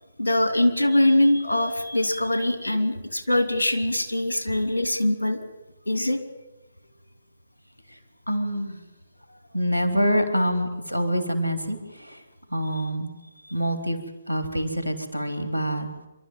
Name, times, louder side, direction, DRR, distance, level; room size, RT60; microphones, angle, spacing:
voice 1, 0.2-5.4 5.9-6.2, left 1 dB, 85° left, 8 dB, 2.8 m, -22 dB
voice 2, 8.3-8.8 9.3-12.2 12.5-13.1 13.5-14.0 14.3-15.9, equal, 90° right, 6 dB, 3.5 m, -26 dB
27.0 x 12.5 x 9.1 m, 1.0 s
figure-of-eight pair, 135°, 0 cm